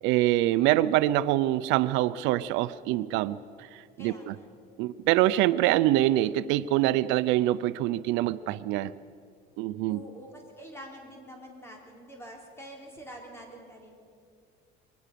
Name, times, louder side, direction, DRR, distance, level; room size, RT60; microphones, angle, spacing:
voice 1, 0.0-4.3 4.8-8.9 9.6-10.0, right 15 dB, 80° right, 15 dB, 0.6 m, -25 dB
voice 2, 4.0-4.5 9.9-14.2, equal, 15° left, 1 dB, 3.9 m, -46 dB
22.5 x 19.0 x 6.9 m, 2.2 s
cardioid pair, 155°, 19 cm